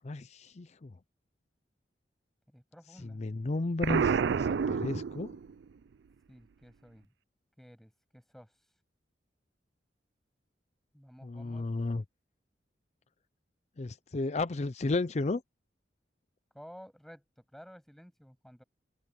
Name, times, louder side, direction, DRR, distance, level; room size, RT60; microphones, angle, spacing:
voice 1, 0.0-0.9 3.2-5.3 11.2-12.0 13.8-15.4, left 2 dB, 40° left, 0.5 m, -33 dB
voice 2, 2.5-3.3 6.3-7.1 7.6-8.5 10.9-11.7 16.5-17.2 17.5-18.6, equal, ahead, 7.1 m, -53 dB
Explosion, 3.8-5.6, right 6 dB, 80° right, 0.4 m, -29 dB
open air
head